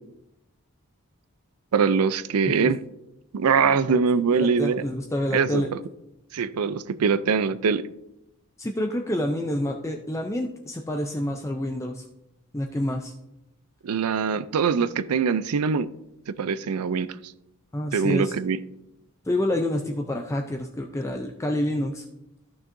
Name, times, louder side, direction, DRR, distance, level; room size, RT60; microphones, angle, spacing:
voice 1, 1.7-2.8 3.3-4.8 5.3-5.6 6.3-7.9 13.8-15.9 16.4-17.2 17.9-18.6, right 5 dB, 80° right, 0.4 m, -23 dB
voice 2, 4.3-5.7 8.6-12.0 12.5-13.1 17.7-18.3 19.2-22.0, left 1 dB, 15° left, 0.4 m, -28 dB
14.0 x 6.2 x 2.6 m
head